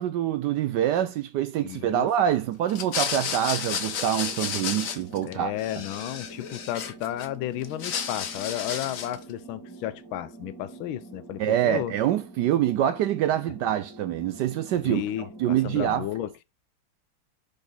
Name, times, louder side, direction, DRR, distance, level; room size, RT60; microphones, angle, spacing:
voice 1, 0.0-5.5 11.4-16.1, right 11 dB, 75° right, 1.0 m, -25 dB
voice 2, 1.6-2.1 5.2-11.9 14.8-16.3, left 13 dB, 75° left, 1.4 m, -33 dB
sound 1, 2.7-5.3 5.6-7.3 7.6-9.2, left 7 dB, 55° left, 1.0 m, -32 dB
sound 2, 2.8-15.9, right 2 dB, 10° left, 1.8 m, -46 dB
5.9 x 5.2 x 3.9 m
omnidirectional pair, 2.3 m